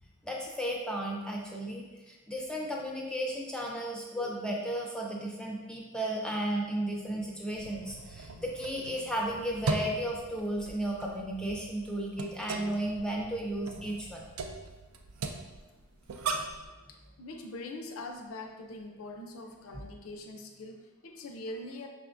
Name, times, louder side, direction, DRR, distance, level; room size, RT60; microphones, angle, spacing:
voice 1, 0.2-14.2, right 1 dB, 5° left, -2 dB, 0.3 m, -34 dB
sound 1, 7.5-16.7, right 3 dB, 80° right, 0.4 m, -39 dB
voice 2, 16.9-21.9, left 2 dB, 75° left, 4 dB, 0.5 m, -43 dB
5.6 x 3.4 x 2.5 m, 1.2 s
head